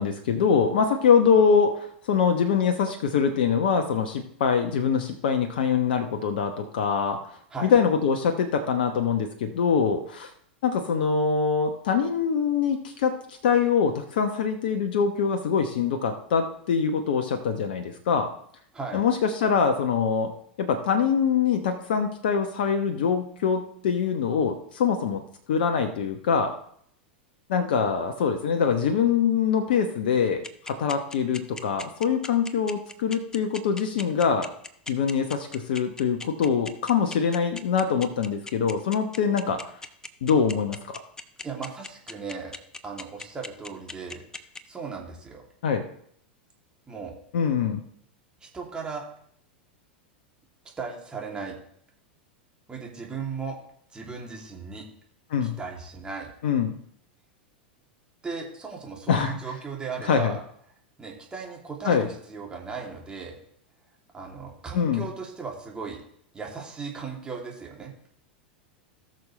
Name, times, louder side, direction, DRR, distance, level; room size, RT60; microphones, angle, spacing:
voice 1, 0.0-7.2 7.6-10.3 10.6-18.3 18.9-20.3 20.6-25.2 25.5-26.5 27.5-34.5 34.9-39.7 40.2-41.0 45.6-45.8 47.3-47.8 55.3-55.6 56.4-56.8 59.1-59.4 60.0-60.3 61.8-62.1 64.7-65.0, left 6 dB, 65° left, 6 dB, 1.0 m, -24 dB
sound 1, 30.4-44.6, left 3 dB, 10° left, 0.7 m, -37 dB
voice 2, 41.4-44.2 44.7-45.4 46.9-47.1 48.4-49.0 50.8-51.6 52.7-53.6 53.9-54.9 55.4-56.3 58.2-60.4 61.0-63.4 64.1-66.0 66.3-67.9, right 5 dB, 15° right, -1 dB, 2.7 m, -36 dB
18.0 x 6.5 x 3.2 m, 0.67 s
figure-of-eight pair, 90°, 6 cm